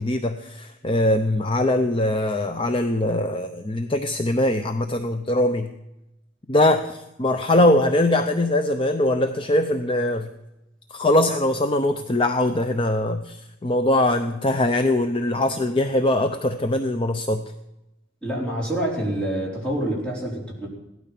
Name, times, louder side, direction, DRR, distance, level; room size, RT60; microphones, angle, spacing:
voice 1, 0.0-5.7 6.5-10.3 10.9-17.4, left 1 dB, 30° left, 7 dB, 0.7 m, -22 dB
voice 2, 18.2-20.7, right 1 dB, 5° left, -4 dB, 4.5 m, -27 dB
16.5 x 12.5 x 5.9 m, 0.90 s
head